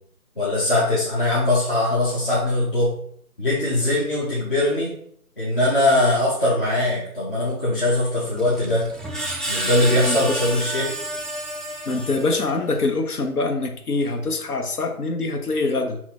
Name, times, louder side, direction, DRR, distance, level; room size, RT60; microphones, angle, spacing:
voice 1, 0.4-2.9 3.4-4.9 5.4-8.9 9.5-10.9, left 1 dB, 35° left, -7 dB, 0.9 m, -21 dB
Screech, 8.4-12.7, right 1 dB, ahead, 0.3 m, -30 dB
voice 2, 11.9-16.0, left 3 dB, 80° left, 5 dB, 0.9 m, -24 dB
6.3 x 2.9 x 2.9 m, 0.66 s
figure-of-eight pair, 170°, 44 cm